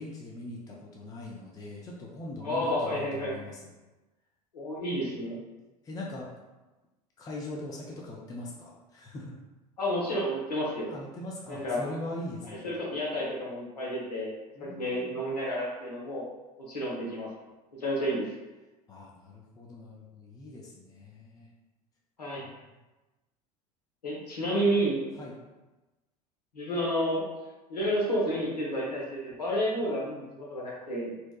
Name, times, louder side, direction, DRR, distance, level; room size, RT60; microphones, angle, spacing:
voice 1, 0.0-3.7 5.8-6.3 7.2-9.3 10.9-12.7 14.6-15.2 18.9-21.5 22.4-22.5 25.2-25.3, left 1 dB, 20° left, -3 dB, 0.4 m, -41 dB
voice 2, 2.4-3.4 4.5-5.4 9.8-10.9 11.5-11.8 12.5-14.3 14.6-16.2 16.6-17.3 17.8-18.3 22.2-22.4 24.0-25.0 26.5-27.2 27.7-31.1, equal, 85° left, -4 dB, 0.8 m, -30 dB
2.7 x 2.1 x 2.2 m, 1.1 s
figure-of-eight pair, 75°, 20 cm